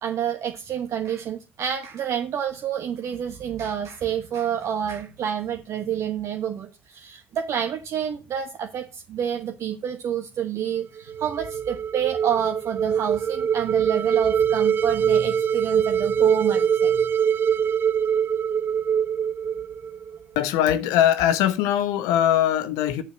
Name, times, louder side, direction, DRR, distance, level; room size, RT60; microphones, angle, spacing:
voice 1, 0.0-17.1, right 9 dB, 55° right, 1.1 m, -28 dB
sound 1, 11.0-20.2, right 8 dB, 35° right, 0.7 m, -23 dB
voice 2, 20.3-23.0, left 11 dB, 70° left, 1.0 m, -21 dB
7.2 x 6.8 x 5.2 m
hypercardioid pair, 60°, 6 cm